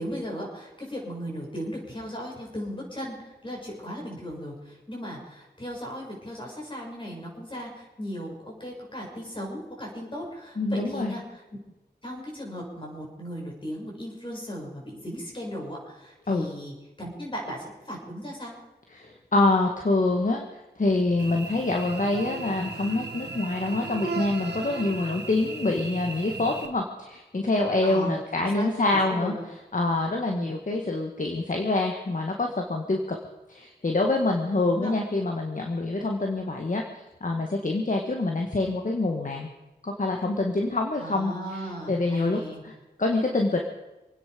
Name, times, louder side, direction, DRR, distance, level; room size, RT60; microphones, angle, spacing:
voice 1, 0.0-11.4 12.0-18.5 27.8-29.4 30.3-30.5 34.6-34.9 41.0-42.6, equal, 30° left, -2 dB, 6.8 m, -37 dB
voice 2, 10.6-11.1 16.3-16.5 18.9-20.4 20.8-29.3 29.7-33.2 33.5-36.8 37.2-39.5 39.8-42.7 43.0-43.6, left 2 dB, 50° left, 2 dB, 1.8 m, -26 dB
Cricket / Buzz, 21.2-26.7, right 4 dB, 75° right, 1.8 m, -36 dB
27.0 x 9.9 x 5.3 m, 1.0 s
wide cardioid pair, 75°, 17 cm